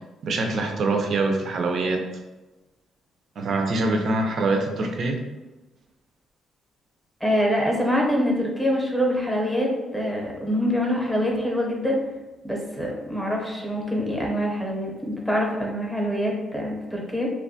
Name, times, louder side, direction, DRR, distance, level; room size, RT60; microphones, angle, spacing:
voice 1, 0.2-2.0 3.4-5.2, right 2 dB, 60° right, 3 dB, 0.4 m, -24 dB
voice 2, 7.2-12.0 12.4-17.3, equal, 5° left, -1 dB, 0.7 m, -25 dB
2.8 x 2.2 x 2.7 m, 1.1 s
cardioid pair, 90°, 0 cm